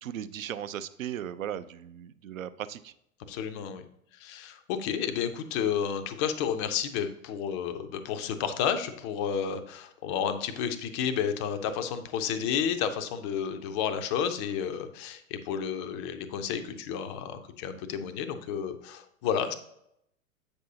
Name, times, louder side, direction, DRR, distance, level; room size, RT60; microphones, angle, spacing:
voice 1, 0.0-2.9, right 10 dB, 70° right, 14 dB, 0.5 m, -37 dB
voice 2, 3.3-3.8 4.2-19.6, left 8 dB, 20° left, 8 dB, 0.4 m, -31 dB
7.9 x 5.4 x 2.7 m, 0.76 s
figure-of-eight pair, 90°, 42 cm